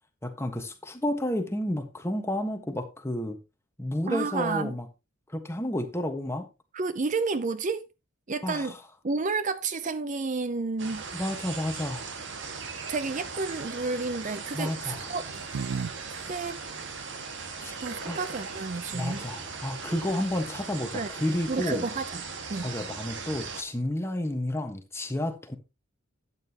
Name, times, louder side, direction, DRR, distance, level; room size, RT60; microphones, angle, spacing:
voice 1, 0.2-3.4 3.8-4.9 5.3-6.5 8.4-8.7 11.1-12.1 14.5-15.1 17.6-17.7 18.0-18.2 18.9-21.9 22.6-25.6, left 1 dB, 10° left, 1.4 m, -31 dB
voice 2, 4.1-4.7 6.7-7.9 8.3-8.7 9.0-11.0 12.9-15.2 16.1-16.6 17.8-19.3 20.9-21.1 21.5-22.2 22.5-22.7, right 4 dB, 35° right, 0.5 m, -31 dB
sound 1, 10.8-23.6, right 5 dB, 60° right, 1.7 m, -38 dB
sound 2, 13.4-13.9 14.8-15.9 16.2-16.3 18.0-18.1 18.3-18.7, right 5 dB, 90° right, 0.5 m, -36 dB
12.0 x 9.1 x 2.9 m
head